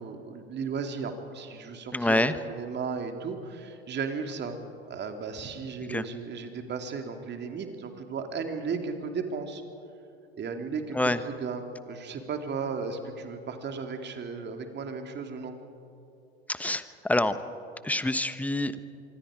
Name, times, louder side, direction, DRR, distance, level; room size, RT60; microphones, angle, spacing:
voice 1, 0.0-4.6 4.9-9.6 10.4-11.0 11.2-15.6, right 5 dB, 35° right, 5 dB, 2.6 m, -35 dB
voice 2, 1.9-2.4 5.8-6.1 10.9-11.2 16.5-17.4 17.8-18.8, left 1 dB, 5° left, 12 dB, 1.1 m, -26 dB
26.0 x 24.0 x 5.0 m, 2.6 s
hypercardioid pair, 80°, 32 cm